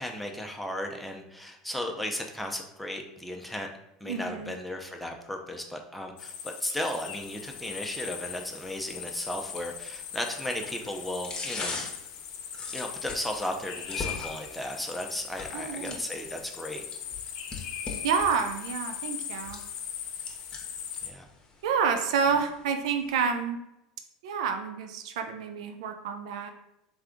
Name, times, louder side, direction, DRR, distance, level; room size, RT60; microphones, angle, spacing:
voice 1, 0.0-3.7 4.0-11.8 12.7-16.8 21.0-21.3, left 1 dB, ahead, 2 dB, 0.7 m, -35 dB
voice 2, 4.0-4.5 15.5-16.0 18.0-19.6 21.6-23.6 24.2-26.5, right 6 dB, 75° right, 6 dB, 0.5 m, -29 dB
sound 1, 6.2-21.1, left 8 dB, 60° left, 0.5 m, -39 dB
sound 2, 7.2-23.2, left 3 dB, 25° left, 1.1 m, -44 dB
3.5 x 3.4 x 3.7 m, 0.85 s
hypercardioid pair, 90°, 3 cm